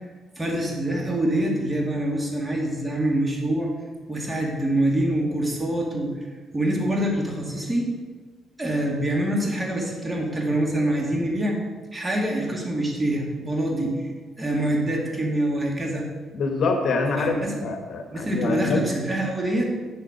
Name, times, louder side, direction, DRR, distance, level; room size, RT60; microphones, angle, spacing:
voice 1, 0.4-3.7 4.1-6.1 6.5-7.9 8.6-11.6 11.9-14.0 14.4-16.1 17.2-17.7 18.1-19.6, right 1 dB, 20° right, -1 dB, 2.3 m, -25 dB
voice 2, 16.3-18.8, left 4 dB, 60° left, 3 dB, 1.2 m, -25 dB
10.0 x 6.9 x 5.1 m, 1.4 s
cardioid pair, 90°, 0 cm